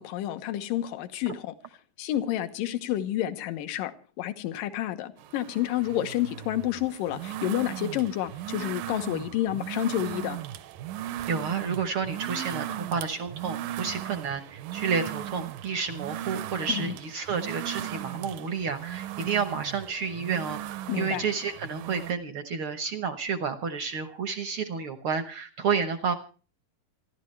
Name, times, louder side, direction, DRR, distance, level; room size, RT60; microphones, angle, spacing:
voice 1, 0.0-1.5 2.0-10.4 16.7-16.9 20.9-21.3, left 13 dB, 80° left, 2.7 m, -30 dB
sound 1, 5.2-22.1, right 12 dB, 80° right, 2.5 m, -37 dB
voice 2, 11.3-26.1, right 6 dB, 65° right, 1.3 m, -30 dB
27.0 x 12.0 x 3.2 m
omnidirectional pair, 3.9 m